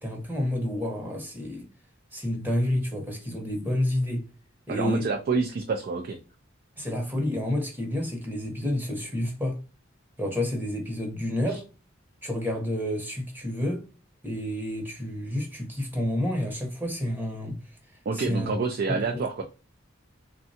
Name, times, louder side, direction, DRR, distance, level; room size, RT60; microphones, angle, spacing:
voice 1, 0.0-1.7 2.1-4.2 4.7-5.0 6.8-9.6 10.2-11.6 12.2-13.8 14.2-17.6 18.1-18.5 18.9-19.4, left 1 dB, 10° right, 0.8 m, -29 dB
voice 2, 4.7-6.2 11.5-11.6 18.1-19.4, right 4 dB, 50° right, 0.4 m, -28 dB
3.5 x 2.2 x 2.7 m
head